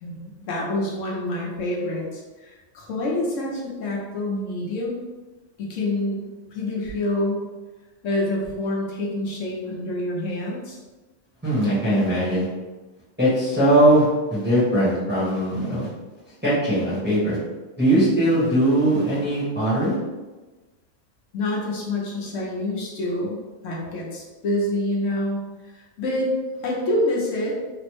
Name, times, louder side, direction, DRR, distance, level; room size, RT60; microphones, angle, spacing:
voice 1, 0.0-5.0 5.6-7.5 8.0-10.8 21.3-26.3 26.6-27.6, left 1 dB, 75° left, -3 dB, 1.0 m, -27 dB
voice 2, 11.4-12.4 13.2-15.9 16.4-17.4 17.8-20.0, right 1 dB, 10° right, -10 dB, 0.9 m, -20 dB
3.3 x 2.0 x 3.0 m, 1.2 s
omnidirectional pair, 1.4 m